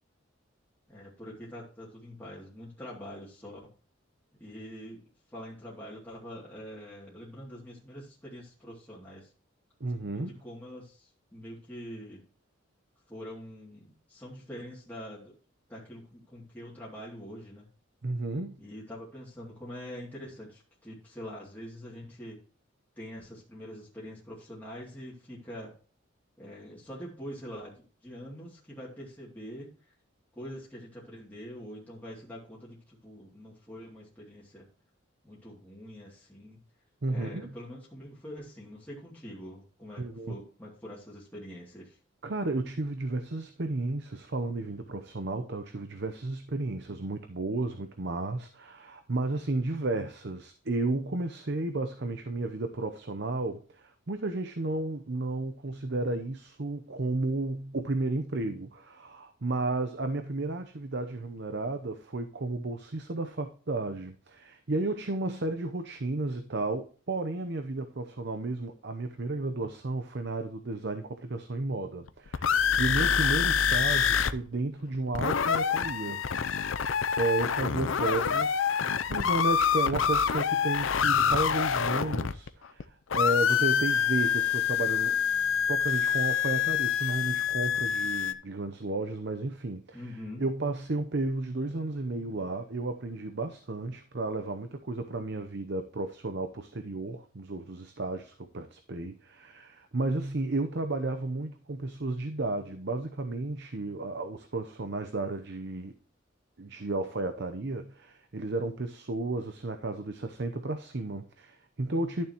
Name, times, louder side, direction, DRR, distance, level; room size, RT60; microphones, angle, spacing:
voice 1, 0.9-3.6 4.4-5.0 5.3-9.3 10.1-12.2 13.1-15.3 15.7-17.7 18.6-22.4 23.0-25.7 26.4-29.7 30.3-34.7 35.2-36.6 37.1-42.0 77.9-78.4 89.9-90.4, equal, 10° left, 2.6 m, -44 dB
voice 2, 9.8-10.4 18.0-18.6 37.0-37.5 40.0-40.4 42.2-76.2 77.2-78.5 79.1-85.1 85.7-90.0 90.4-105.9 106.6-112.2, right 2 dB, 55° right, 0.8 m, -33 dB
sound 1, 72.1-74.3 74.6-74.7 74.9-82.8 83.1-88.3, left 7 dB, 75° left, 0.6 m, -26 dB
11.5 x 7.0 x 3.0 m
head